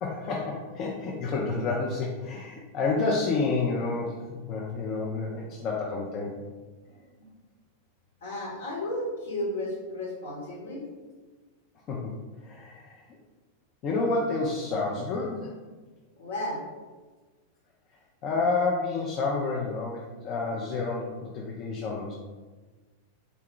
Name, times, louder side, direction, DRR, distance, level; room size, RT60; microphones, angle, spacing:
voice 1, 0.0-6.4 11.9-12.1 12.4-13.0 13.8-15.5 18.2-22.1, left 3 dB, 35° left, -3 dB, 0.5 m, -29 dB
voice 2, 5.3-5.7 6.9-7.0 8.2-10.8 16.2-16.6, left 1 dB, 60° left, -3 dB, 1.1 m, -34 dB
3.9 x 2.2 x 3.6 m, 1.3 s
figure-of-eight pair, 90°, 0 cm